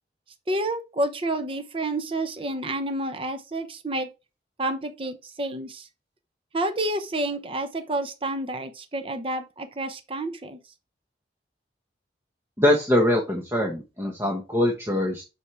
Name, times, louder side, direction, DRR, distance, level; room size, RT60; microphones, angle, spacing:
voice 1, 0.5-4.1 4.6-5.9 6.5-10.6, right 1 dB, 30° right, 0.8 m, -29 dB
voice 2, 12.6-15.2, left 1 dB, 15° right, 1.3 m, -23 dB
7.2 x 6.3 x 3.4 m
head